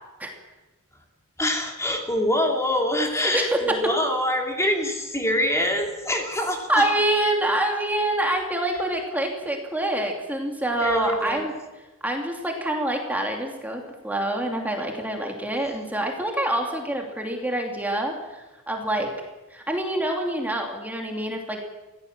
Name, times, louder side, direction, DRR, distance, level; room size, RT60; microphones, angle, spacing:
voice 1, 1.4-6.8 10.8-11.5, left 1 dB, 15° left, 2 dB, 2.9 m, -25 dB
voice 2, 3.3-3.7 6.7-11.5 12.0-19.1 19.5-21.6, right 1 dB, 10° right, 2 dB, 2.7 m, -26 dB
24.5 x 16.5 x 7.4 m, 1.1 s
head